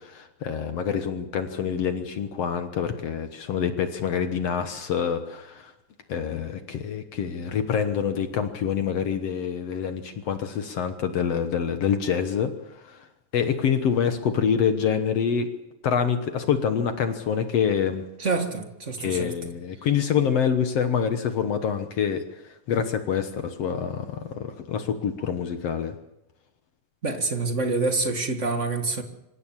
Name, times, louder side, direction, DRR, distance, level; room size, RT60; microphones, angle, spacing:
voice 1, 0.0-5.7 6.1-12.5 12.8-13.0 13.3-15.5 15.8-18.0 19.0-22.2 22.7-26.0, left 7 dB, 60° left, 8 dB, 2.0 m, -26 dB
voice 2, 18.2-19.5 27.0-29.0, right 3 dB, 30° right, 5 dB, 1.6 m, -27 dB
26.0 x 15.5 x 7.4 m, 0.92 s
omnidirectional pair, 3.6 m